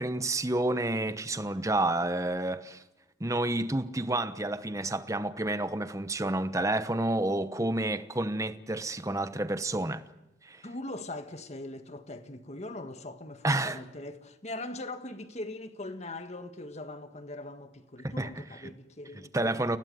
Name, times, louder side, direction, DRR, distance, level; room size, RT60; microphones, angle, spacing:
voice 1, 0.0-2.8 3.2-10.0 10.4-10.6 13.4-13.8 18.2-18.3 19.3-19.8, right 2 dB, 15° right, 1.1 m, -29 dB
voice 2, 10.6-19.8, left 2 dB, 35° left, 1.7 m, -41 dB
29.5 x 18.0 x 7.9 m
head